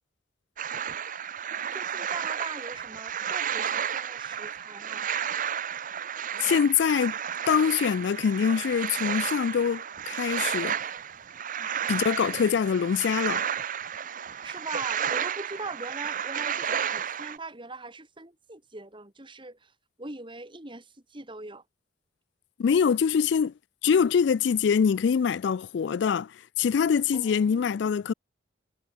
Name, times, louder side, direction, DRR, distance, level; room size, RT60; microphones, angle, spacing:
sound 1, 0.6-17.4, right 8 dB, 45° right, 0.8 m, -32 dB
voice 1, 1.7-5.1 11.6-11.7 14.4-19.7 20.0-21.6 27.1-27.7, right 3 dB, 25° right, 2.6 m, -41 dB
voice 2, 6.4-7.2 7.5-10.8 11.9-13.4 22.6-23.5 23.8-28.1, left 7 dB, 65° left, 0.3 m, -24 dB
head